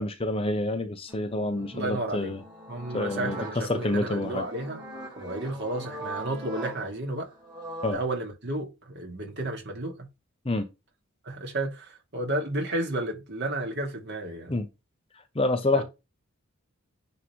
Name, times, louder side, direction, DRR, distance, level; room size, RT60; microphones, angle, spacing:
voice 1, 0.0-2.4 2.9-3.4 3.7-4.4 7.8-8.0 10.5-10.7 14.5-14.7 15.4-15.8, left 2 dB, 25° left, 0.7 m, -27 dB
sound 1, 1.1-7.9, right 1 dB, 20° right, 2.3 m, -41 dB
voice 2, 1.7-2.3 2.7-4.8 5.2-7.3 7.9-10.1 11.2-14.6 15.7-15.8, right 1 dB, 50° right, 2.4 m, -32 dB
9.5 x 3.7 x 3.1 m
head